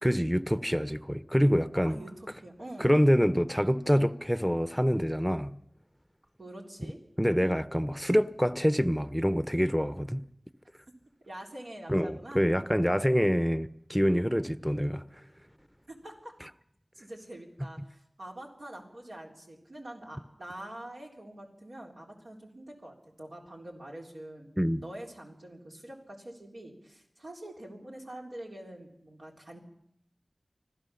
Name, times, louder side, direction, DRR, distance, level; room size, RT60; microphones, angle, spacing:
voice 1, 0.0-2.0 2.8-5.6 7.2-10.3 11.9-15.1 24.6-24.8, equal, 5° right, 0.7 m, -26 dB
voice 2, 1.7-3.0 6.4-7.0 11.3-12.4 15.9-16.3 16.9-24.5 24.8-29.6, right 1 dB, 90° right, 3.8 m, -45 dB
25.5 x 15.5 x 7.0 m
wide cardioid pair, 45°, 0 cm